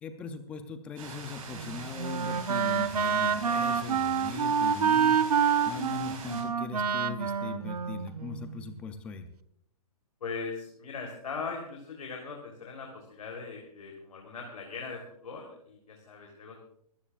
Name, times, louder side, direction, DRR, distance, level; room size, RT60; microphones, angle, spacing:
voice 1, 0.0-5.2 5.6-9.3, left 5 dB, 5° left, 9 dB, 0.4 m, -40 dB
sound 1, 1.0-6.4, right 5 dB, 60° right, 6.6 m, -43 dB
Wind instrument woodwind instrument, 1.5-8.6, right 7 dB, 80° right, 1.1 m, -28 dB
voice 2, 10.2-16.6, left 4 dB, 75° left, 1 dB, 3.6 m, -40 dB
24.5 x 14.5 x 2.5 m, 0.72 s
hypercardioid pair, 165°, 20 cm